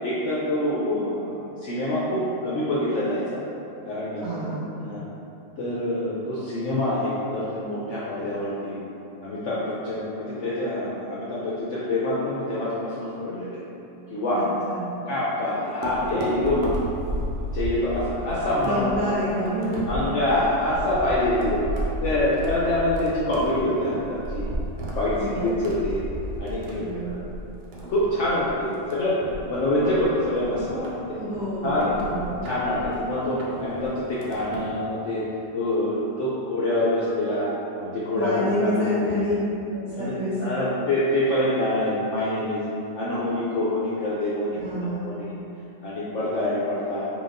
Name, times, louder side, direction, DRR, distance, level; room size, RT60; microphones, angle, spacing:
voice 1, 0.0-3.4 3.8-5.0 5.6-8.8 9.2-13.6 14.1-14.5 15.1-16.7 17.5-19.1 19.9-21.6 22.0-24.5 24.9-26.0 26.4-27.3 27.9-29.2 29.4-30.9 31.6-31.9 32.4-35.2 35.5-37.5 37.8-38.9 40.0-40.1 40.4-42.6 42.9-44.5 45.0-45.3 45.8-47.1, left 1 dB, 70° left, -8 dB, 0.7 m, -26 dB
voice 2, 4.2-4.6 14.3-14.9 18.6-19.8 25.2-25.6 26.7-27.2 31.1-32.3 38.1-39.3 39.7-40.4 44.5-45.2, left 1 dB, 65° right, -10 dB, 0.6 m, -28 dB
sound 1, 15.8-34.8, equal, 80° right, 1.2 m, -33 dB
3.9 x 3.5 x 2.5 m, 2.9 s
omnidirectional pair, 1.8 m